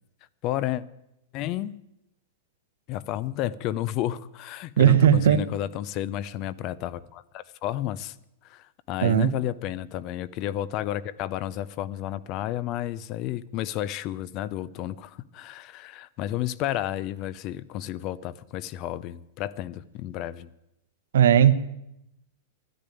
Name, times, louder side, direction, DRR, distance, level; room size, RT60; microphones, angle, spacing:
voice 1, 0.4-0.8 1.3-1.8 2.9-8.1 8.4-20.5, left 13 dB, 30° left, 0.5 m, -31 dB
voice 2, 4.8-5.5 9.0-9.3 21.1-21.5, right 10 dB, 85° right, 1.1 m, -17 dB
12.0 x 10.5 x 9.1 m
supercardioid pair, 170°, 0 cm